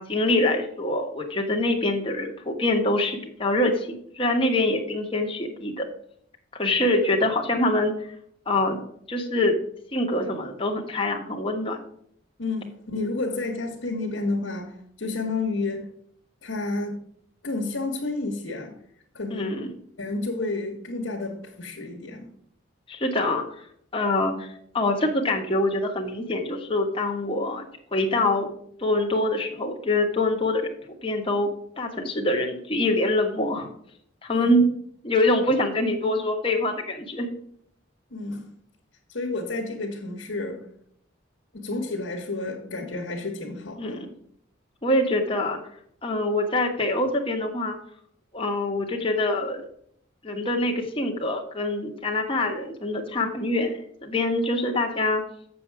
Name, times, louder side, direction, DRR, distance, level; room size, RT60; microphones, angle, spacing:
voice 1, 0.0-3.9 4.1-5.8 6.5-8.1 8.5-8.8 9.1-9.6 9.9-11.8 19.3-19.7 22.9-23.7 23.9-28.5 28.8-30.7 31.0-33.7 34.2-34.7 35.0-37.3 43.8-44.0 44.8-45.6 46.0-47.7 48.3-49.6 50.2-55.2, left 1 dB, 25° left, 1.3 m, -25 dB
voice 2, 12.4-15.9 16.4-17.0 17.4-18.8 19.1-19.6 20.0-22.3 34.4-34.5 38.1-38.5 39.1-40.6 41.5-44.1, left 3 dB, 75° left, 1.4 m, -30 dB
7.6 x 7.0 x 4.7 m
head